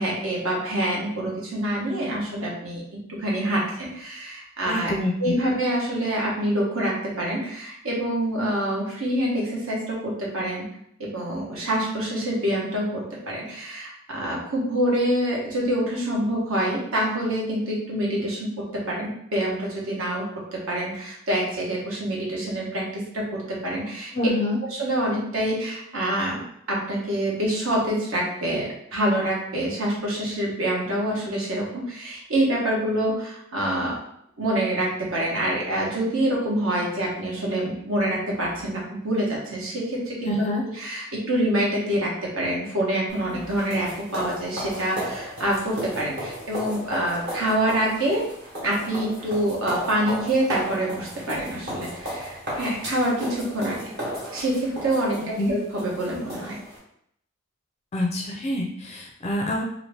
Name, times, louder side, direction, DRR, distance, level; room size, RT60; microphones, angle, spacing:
voice 1, 0.0-2.8 3.2-4.9 5.2-10.6 11.0-20.2 20.5-24.1 24.8-26.4 26.7-34.0 34.4-40.3 40.7-48.2 48.6-53.9 54.3-56.6, right 1 dB, 70° right, -3 dB, 1.0 m, -26 dB
voice 2, 4.7-5.4 24.1-24.6 40.2-40.6 55.2-55.5 57.9-59.6, left 1 dB, 30° left, 0 dB, 0.4 m, -26 dB
sound 1, 43.1-56.8, equal, 50° right, 1.2 m, -34 dB
2.8 x 2.5 x 3.3 m, 0.72 s
head